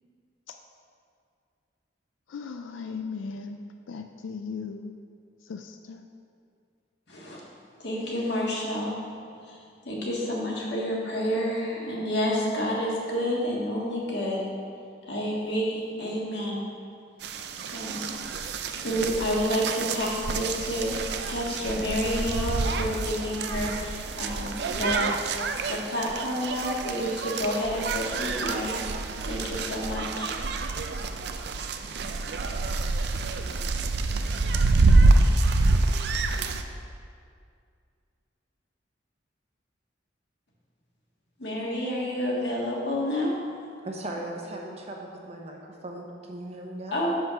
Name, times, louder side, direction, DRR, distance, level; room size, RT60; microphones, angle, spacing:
voice 1, 2.3-4.9 5.4-6.1, left 5 dB, 85° left, 6 dB, 0.4 m, -37 dB
voice 2, 7.1-7.4 7.8-9.0 9.4-9.6 9.8-14.4 15.1-16.6 17.7-18.1 18.8-25.1 25.7-30.3 41.4-43.3 46.9-47.2, equal, 60° left, -4 dB, 1.7 m, -29 dB
sound 1, 17.2-36.6, right 3 dB, 55° right, 0.4 m, -27 dB
voice 3, 43.8-47.0, right 1 dB, 35° right, 0 dB, 0.8 m, -38 dB
6.6 x 5.6 x 5.7 m, 2.3 s
head